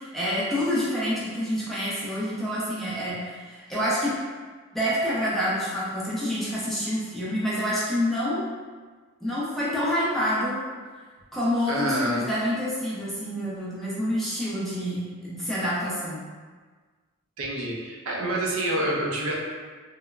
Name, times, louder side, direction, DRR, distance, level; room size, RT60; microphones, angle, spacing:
voice 1, 0.0-4.2 4.7-8.5 9.2-10.6 11.3-16.2, equal, ahead, -9 dB, 0.4 m, -27 dB
voice 2, 11.7-12.3 17.4-19.4, right 1 dB, 75° right, -2 dB, 0.5 m, -27 dB
3.0 x 2.0 x 2.3 m, 1.5 s
head